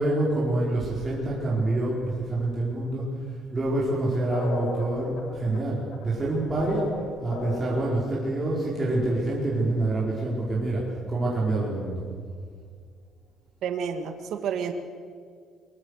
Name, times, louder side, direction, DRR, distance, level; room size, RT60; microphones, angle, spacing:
voice 1, 0.0-6.9 7.2-12.0, right 2 dB, 20° right, -6 dB, 4.9 m, -27 dB
sound 1, 4.3-8.0, left 3 dB, 80° left, 4.4 m, -34 dB
voice 2, 13.6-14.7, right 7 dB, 60° right, 6 dB, 2.1 m, -30 dB
23.0 x 23.0 x 6.6 m, 2.1 s
cardioid pair, 155°, 0 cm